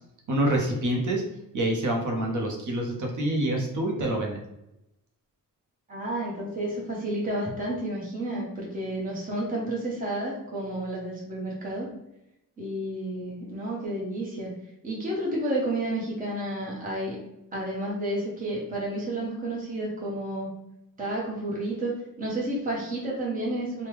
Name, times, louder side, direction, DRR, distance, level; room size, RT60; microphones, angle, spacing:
voice 1, 0.3-1.2 1.5-4.4, right 1 dB, 55° right, 1 dB, 0.7 m, -26 dB
voice 2, 5.9-11.9 12.6-14.5 14.8-17.2 17.5-20.5 21.0-23.9, right 1 dB, 25° right, -4 dB, 0.8 m, -31 dB
3.4 x 2.2 x 3.1 m, 0.87 s
wide cardioid pair, 150°, 35 cm